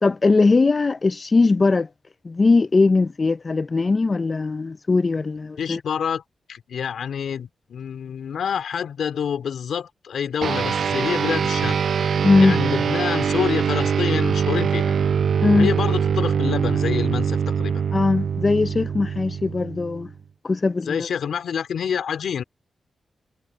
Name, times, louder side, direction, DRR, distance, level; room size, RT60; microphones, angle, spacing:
voice 1, 0.0-1.9 2.2-5.8 12.2-12.6 15.4-15.7 17.9-20.1 20.4-21.1, left 3 dB, 35° left, 0.5 m, -20 dB
voice 2, 5.6-6.2 6.5-11.8 12.4-14.9 15.5-17.8 20.8-22.4, left 7 dB, 90° left, 3.2 m, -27 dB
sound 1, 10.4-20.2, right 7 dB, 70° right, 0.3 m, -23 dB
cardioid pair, 90°, 0 cm